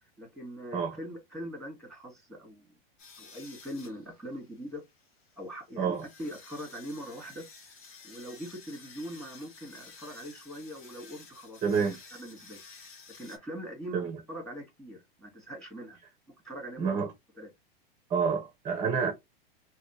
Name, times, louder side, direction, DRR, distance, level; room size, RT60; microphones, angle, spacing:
voice 1, 0.0-2.7 3.2-4.8 5.4-7.5 8.0-11.6 12.1-12.6 13.2-16.0 16.4-17.1 17.4-17.5, equal, ahead, 2.0 m, -42 dB
sound 1, 3.0-13.4, left 4 dB, 40° left, 1.5 m, -53 dB
voice 2, 11.6-12.0 13.9-14.2 16.8-17.1 18.1-19.1, right 6 dB, 15° right, 0.6 m, -28 dB
4.1 x 2.1 x 2.9 m
supercardioid pair, 135°, 31 cm